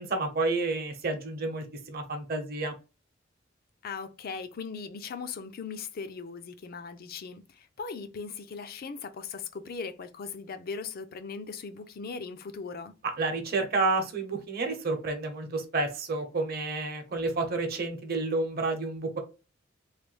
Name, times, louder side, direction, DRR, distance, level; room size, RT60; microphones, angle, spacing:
voice 1, 0.0-2.7 13.2-19.2, right 3 dB, 50° right, 0.8 m, -30 dB
voice 2, 3.8-12.9, left 5 dB, 50° left, 0.4 m, -39 dB
3.2 x 2.3 x 3.1 m
head